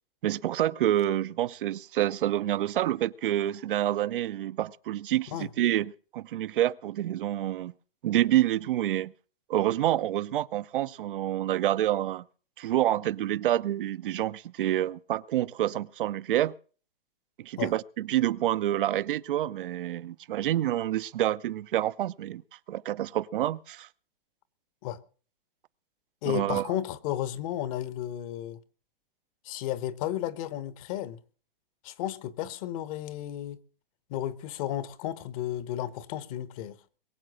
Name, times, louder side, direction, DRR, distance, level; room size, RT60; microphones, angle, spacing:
voice 1, 0.2-7.7 8.0-9.1 9.5-12.2 12.6-16.5 17.4-22.4 22.7-23.9 26.3-26.7, right 13 dB, 65° right, 0.6 m, -28 dB
voice 2, 26.2-28.6 29.4-31.2 31.8-33.6 34.1-36.8, left 12 dB, 35° left, 1.0 m, -33 dB
22.0 x 7.6 x 6.2 m
hypercardioid pair, 145°, 29 cm